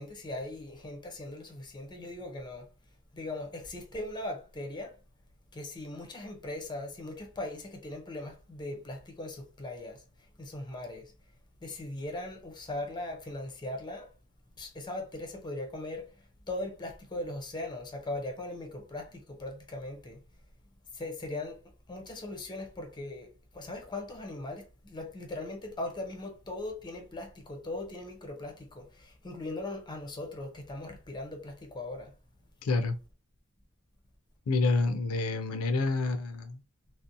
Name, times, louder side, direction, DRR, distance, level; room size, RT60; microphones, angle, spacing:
voice 1, 0.0-2.7 3.1-4.9 5.5-10.0 10.4-11.1 11.6-14.1 14.6-16.0 16.5-20.2 20.9-21.6 21.9-32.1, left 2 dB, 20° left, 0.5 m, -39 dB
voice 2, 32.6-33.0 34.5-36.6, left 3 dB, 85° left, 0.4 m, -28 dB
2.5 x 2.0 x 2.5 m
head